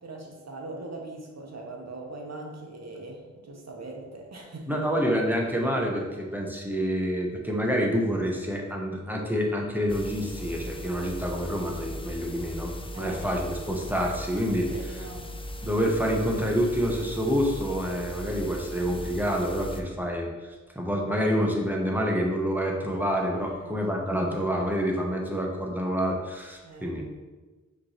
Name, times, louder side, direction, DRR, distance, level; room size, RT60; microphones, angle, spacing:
voice 1, 0.0-4.9 12.9-13.4 14.6-15.4 23.3-23.8 26.6-26.9, right 2 dB, 55° right, 0 dB, 0.9 m, -41 dB
voice 2, 4.7-12.7 13.0-14.7 15.6-20.3 20.8-27.1, equal, 5° right, 0 dB, 0.8 m, -27 dB
sound 1, 9.9-19.8, equal, 20° left, 0.4 m, -38 dB
5.1 x 3.2 x 2.9 m, 1.3 s
cardioid pair, 45°, 31 cm